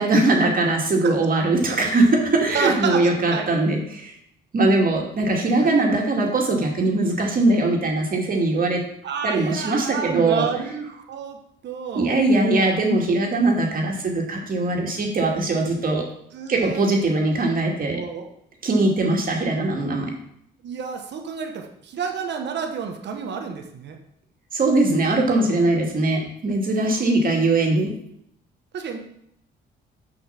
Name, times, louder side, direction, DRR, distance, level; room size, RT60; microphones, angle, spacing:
voice 1, 0.0-4.1 4.5-8.8 9.2-10.5 11.9-16.1 16.5-18.0 18.6-20.1 24.5-27.9, right 2 dB, 45° right, 0 dB, 2.4 m, -21 dB
voice 2, 2.5-3.5 5.6-5.7 9.0-11.4 11.6-12.2 16.3-16.9 17.9-18.3 20.6-24.0 26.9-27.0 28.7-29.0, right 6 dB, 60° right, 4 dB, 1.3 m, -30 dB
6.7 x 5.7 x 5.9 m, 0.72 s
cardioid pair, 90°, 20 cm